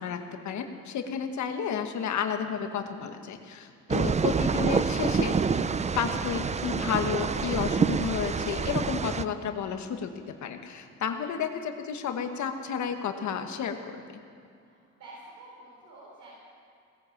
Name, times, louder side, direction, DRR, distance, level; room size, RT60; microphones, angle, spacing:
voice 1, 0.0-5.7 5.9-14.0, left 7 dB, 70° left, 6 dB, 1.3 m, -32 dB
sound 1, 3.9-9.2, right 5 dB, 25° right, 0.5 m, -27 dB
voice 2, 14.6-16.3, right 2 dB, 75° right, -6 dB, 4.5 m, -49 dB
18.5 x 10.5 x 7.2 m, 2.4 s
cardioid pair, 90°, 30 cm